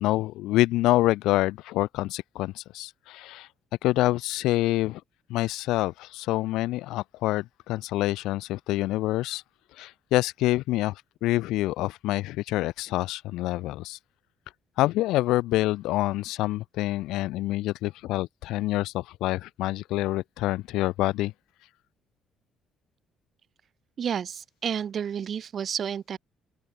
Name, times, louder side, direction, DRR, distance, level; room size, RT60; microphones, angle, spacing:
voice 1, 0.0-3.5 3.8-5.0 5.3-9.4 9.8-10.9 11.2-14.0 14.8-21.3, left 17 dB, 90° left, 0.3 m, -26 dB
voice 2, 24.0-26.2, right 8 dB, 45° right, 0.3 m, -31 dB
open air
cardioid pair, 120°, 0 cm